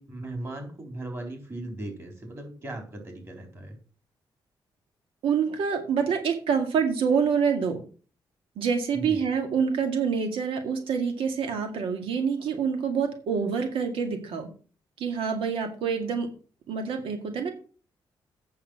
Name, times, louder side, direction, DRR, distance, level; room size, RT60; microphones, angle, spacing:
voice 1, 0.0-3.8 8.9-9.2, right 1 dB, 30° right, 3 dB, 3.9 m, -38 dB
voice 2, 5.2-7.8 8.6-14.5 15.0-16.3 16.7-17.5, right 6 dB, 85° right, 5 dB, 2.1 m, -26 dB
8.6 x 6.6 x 6.3 m, 0.38 s
cardioid pair, 125°, 9 cm